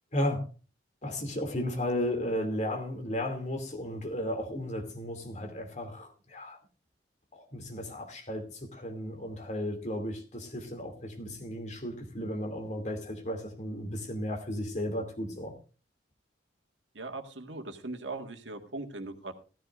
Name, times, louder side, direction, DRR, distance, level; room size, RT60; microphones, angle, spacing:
voice 1, 0.1-0.4 1.0-6.6 7.3-15.5, left 1 dB, 40° left, 2.6 m, -34 dB
voice 2, 16.9-19.4, right 2 dB, 90° right, 1.8 m, -39 dB
15.0 x 14.0 x 2.5 m
head